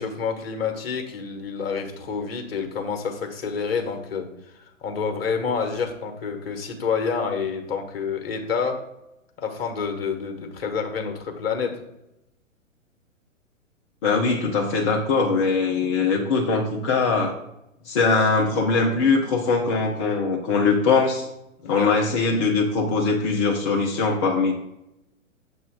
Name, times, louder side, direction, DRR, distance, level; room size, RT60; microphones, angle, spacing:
voice 1, 0.0-4.3 4.6-8.8 9.4-11.8 21.6-22.0, left 5 dB, 45° left, 4 dB, 1.3 m, -28 dB
voice 2, 14.0-17.4 17.8-21.3 21.7-24.5, left 4 dB, 20° left, -1 dB, 0.5 m, -21 dB
7.1 x 3.1 x 5.9 m, 0.88 s
figure-of-eight pair, 115°, 40 cm